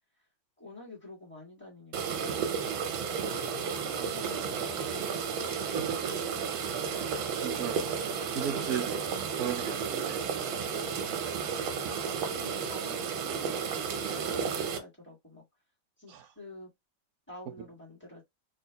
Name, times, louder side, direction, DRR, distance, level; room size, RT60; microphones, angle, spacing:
voice 1, 0.6-2.4 3.6-5.1 11.0-15.4 16.0-16.7 17.3-18.3, left 2 dB, 5° left, 1.5 m, -49 dB
sound 1, 1.9-14.8, right 6 dB, 85° right, 1.5 m, -32 dB
voice 2, 5.7-6.6 7.0-7.9 8.3-8.9 9.3-10.2 12.3-12.5 16.1-16.3, right 8 dB, 65° right, 0.9 m, -37 dB
3.5 x 2.7 x 2.8 m
omnidirectional pair, 2.1 m